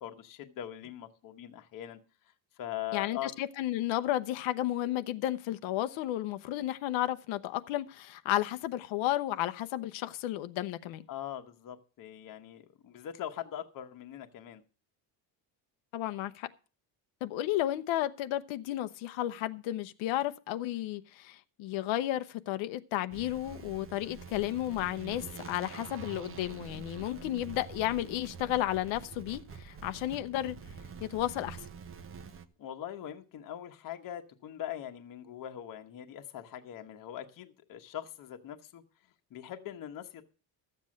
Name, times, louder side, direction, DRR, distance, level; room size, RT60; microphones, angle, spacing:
voice 1, 0.0-2.0 2.6-3.3 11.1-14.6 27.0-27.4 32.6-38.8 39.3-40.3, left 11 dB, 45° left, 1.2 m, -42 dB
voice 2, 2.9-11.0 15.9-16.5 17.2-30.5 31.0-31.6, left 14 dB, 85° left, 0.9 m, -33 dB
sound 1, 23.1-32.5, right 6 dB, 30° right, 0.8 m, -46 dB
13.0 x 7.7 x 6.3 m
cardioid pair, 175°, 46 cm